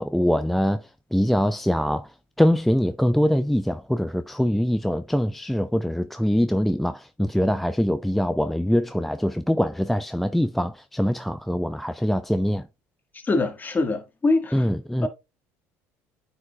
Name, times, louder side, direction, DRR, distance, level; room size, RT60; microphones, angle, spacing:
voice 1, 0.0-2.1 2.4-12.7 14.5-15.1, equal, ahead, 0.4 m, -23 dB
voice 2, 13.2-14.7 15.0-15.1, left 3 dB, 25° left, 1.6 m, -23 dB
9.3 x 5.0 x 2.3 m
supercardioid pair, 85°, 7 cm